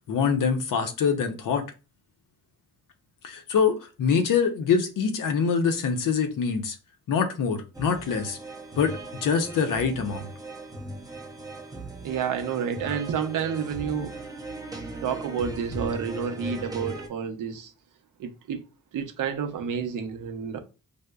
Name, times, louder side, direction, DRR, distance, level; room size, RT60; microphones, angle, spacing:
voice 1, 0.1-1.7 3.2-6.8 7.1-8.4 8.8-10.3, left 6 dB, 70° left, 0.7 m, -25 dB
sound 1, 7.7-17.1, right 2 dB, 10° right, 0.5 m, -38 dB
voice 2, 12.0-14.1 15.0-17.7 18.2-18.6 18.9-20.6, right 7 dB, 70° right, 0.6 m, -30 dB
5.1 x 2.0 x 2.2 m
wide cardioid pair, 125°, 34 cm